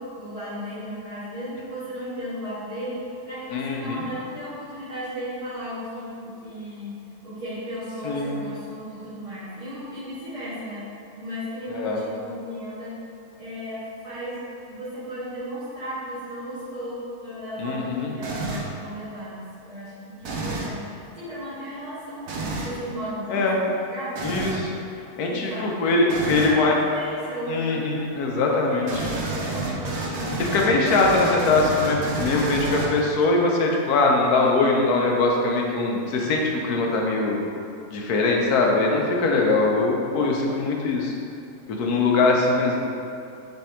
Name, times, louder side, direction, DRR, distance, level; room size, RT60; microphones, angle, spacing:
voice 1, 0.0-10.8 11.2-12.9 13.4-14.4 14.7-22.4 22.6-24.3 25.2-25.8 26.1-28.0 28.6-30.3, equal, 25° right, -13 dB, 1.1 m, -35 dB
voice 2, 3.5-4.0 8.0-8.3 11.7-12.0 17.6-18.1 23.3-23.6 24.2-24.7 25.2-26.7 27.5-29.1 30.4-37.4 37.9-41.1 41.7-42.8, left 3 dB, 85° left, 0 dB, 1.2 m, -22 dB
sound 1, 18.2-18.8 20.2-20.8 22.3-22.7 24.2-24.7 26.1-26.6 28.9-33.2, right 2 dB, 70° right, 1.0 m, -29 dB
3.5 x 3.3 x 4.2 m, 2.6 s
omnidirectional pair, 1.6 m